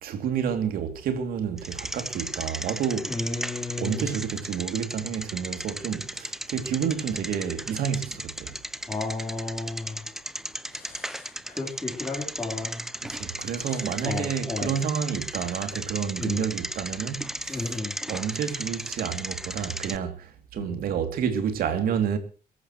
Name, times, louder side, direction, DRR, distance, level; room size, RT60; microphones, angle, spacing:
voice 1, 0.0-3.1 3.8-8.5 13.0-17.8 18.1-22.2, right 8 dB, 70° right, 2.9 m, -29 dB
Bicycle, 1.6-20.0, right 1 dB, 5° right, 0.7 m, -36 dB
voice 2, 3.1-4.1 8.9-10.1 10.7-12.8 13.6-14.7 16.2-16.4 17.5-17.9 20.6-20.8, left 3 dB, 15° left, 4.0 m, -33 dB
23.0 x 14.5 x 3.1 m
cardioid pair, 150°, 16 cm